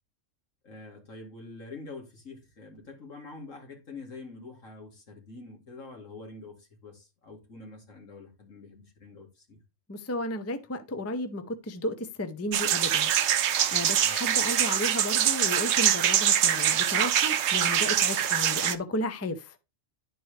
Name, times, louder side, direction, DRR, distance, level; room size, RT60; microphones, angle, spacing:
voice 1, 0.6-9.6 14.0-14.2, left 3 dB, 80° left, 2.6 m, -46 dB
voice 2, 9.9-13.1 13.4-19.6, left 1 dB, 20° left, 0.5 m, -33 dB
sound 1, 12.5-18.7, right 9 dB, 65° right, 0.9 m, -24 dB
11.0 x 4.6 x 3.2 m
omnidirectional pair, 1.3 m